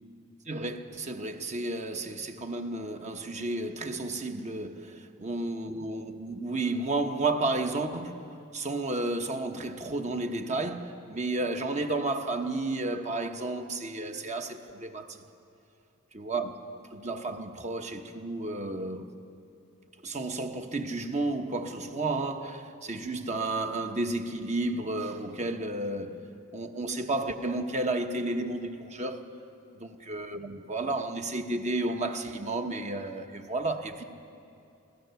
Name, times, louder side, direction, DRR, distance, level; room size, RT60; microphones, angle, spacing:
voice 1, 0.5-15.2 16.1-16.6 16.9-19.1 20.0-26.2 26.5-29.3 29.7-34.0, right 2 dB, 30° right, 1.1 m, -32 dB
24.5 x 16.5 x 7.0 m
head